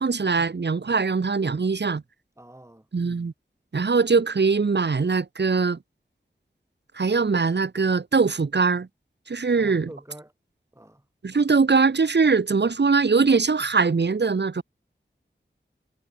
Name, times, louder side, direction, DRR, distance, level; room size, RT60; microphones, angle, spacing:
voice 1, 0.0-2.0 2.9-3.3 3.7-5.8 6.9-8.9 9.3-9.9 11.2-14.6, right 4 dB, 65° right, 1.4 m, -22 dB
voice 2, 2.4-2.8 9.6-10.3 10.7-11.0, right 1 dB, 15° right, 4.9 m, -45 dB
wide cardioid pair, 70°, 19 cm